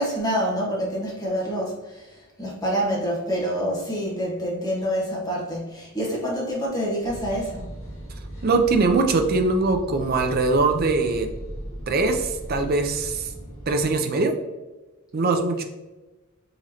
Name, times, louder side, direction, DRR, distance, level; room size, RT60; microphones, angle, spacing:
voice 1, 0.0-7.6, equal, 15° left, -4 dB, 1.0 m, -27 dB
sound 1, 7.0-13.9, right 1 dB, 65° left, 1.4 m, -37 dB
voice 2, 8.4-11.3 11.9-13.3 13.7-14.3 15.1-15.6, right 3 dB, 45° right, 5 dB, 0.4 m, -22 dB
3.8 x 3.0 x 2.8 m, 1.1 s
head